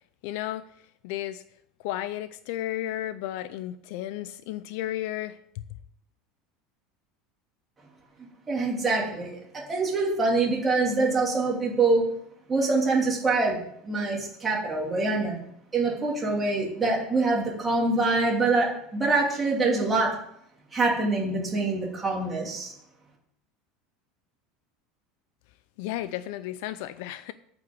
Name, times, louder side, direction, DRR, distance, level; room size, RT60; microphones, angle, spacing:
voice 1, 0.2-0.6 1.0-1.4 1.8-5.4 25.8-27.3, left 13 dB, 60° left, 0.4 m, -33 dB
voice 2, 8.5-12.0 12.5-15.4 15.7-20.1 20.7-22.7, right 3 dB, 10° right, 2.6 m, -25 dB
9.1 x 5.8 x 7.6 m
cardioid pair, 175°, 0 cm